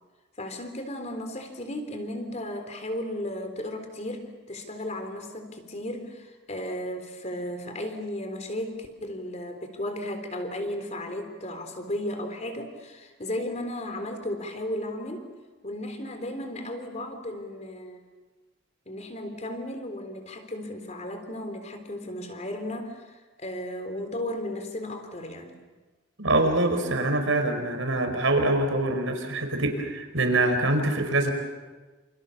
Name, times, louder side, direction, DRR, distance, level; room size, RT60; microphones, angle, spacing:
voice 1, 0.4-15.3 15.6-18.0 18.9-25.6, left 1 dB, 35° left, 7 dB, 3.7 m, -35 dB
voice 2, 26.2-31.3, right 2 dB, 75° right, 5 dB, 5.0 m, -24 dB
28.0 x 28.0 x 7.2 m, 1.3 s
head